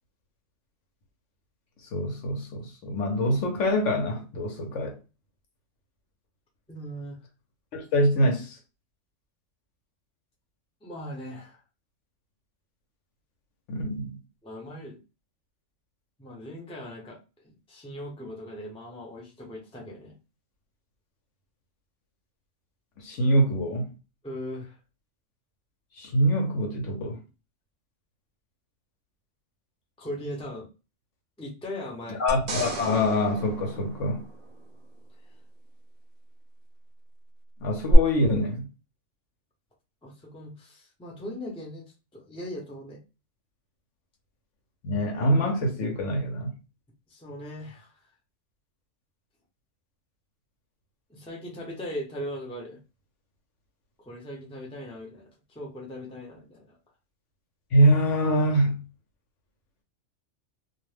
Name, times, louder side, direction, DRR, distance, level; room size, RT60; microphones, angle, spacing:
voice 1, 1.9-5.0 7.7-8.6 13.7-14.2 23.0-23.9 26.0-27.2 32.2-34.3 37.6-38.7 44.8-46.5 57.7-58.8, equal, 70° left, 1.0 m, -24 dB
voice 2, 6.7-7.2 10.8-11.6 14.4-15.0 16.2-20.1 24.2-24.8 30.0-30.7 31.4-32.2 40.0-43.0 47.1-47.9 51.1-52.8 54.0-56.8, equal, 5° left, 0.6 m, -39 dB
sound 1, 32.3-34.8 37.9-38.0, right 3 dB, 50° right, 0.5 m, -34 dB
2.5 x 2.1 x 3.2 m
omnidirectional pair, 1.4 m